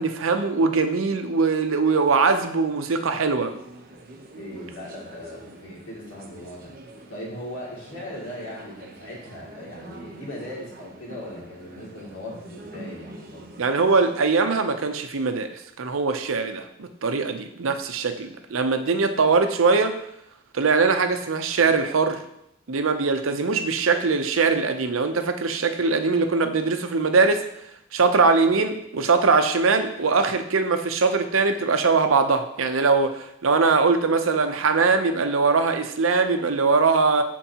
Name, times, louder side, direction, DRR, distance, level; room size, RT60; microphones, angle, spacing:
voice 1, 0.0-3.5 13.6-15.5 15.8-20.0 20.5-22.2 22.7-27.4 27.9-37.2, right 4 dB, 85° right, 7 dB, 0.7 m, -21 dB
sound 1, 3.4-14.2, right 2 dB, 45° right, 0.9 m, -45 dB
voice 2, 4.3-6.7 7.1-13.6, left 1 dB, 75° left, -4 dB, 2.6 m, -39 dB
12.5 x 4.5 x 2.9 m, 0.77 s
head